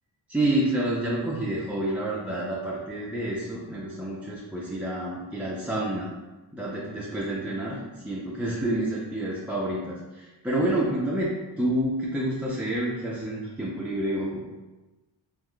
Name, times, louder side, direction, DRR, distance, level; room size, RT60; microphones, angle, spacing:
voice 1, 0.3-6.1 6.5-14.5, right 1 dB, 5° right, -6 dB, 0.3 m, -29 dB
2.4 x 2.3 x 3.5 m, 1.1 s
wide cardioid pair, 95°, 40 cm